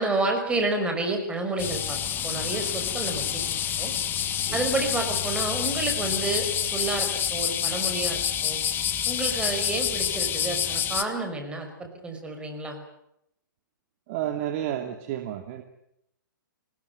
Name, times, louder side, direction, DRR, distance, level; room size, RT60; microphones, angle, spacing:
voice 1, 0.0-2.0 2.2-3.4 3.8-3.9 4.5-8.6 9.1-12.8, right 2 dB, 10° right, 5 dB, 5.7 m, -30 dB
sound 1, 1.6-11.0, left 9 dB, 20° left, 1.7 m, -28 dB
voice 2, 14.1-15.6, right 11 dB, 40° right, 5 dB, 2.6 m, -31 dB
25.5 x 19.5 x 9.5 m, 0.79 s
hypercardioid pair, 135°, 11 cm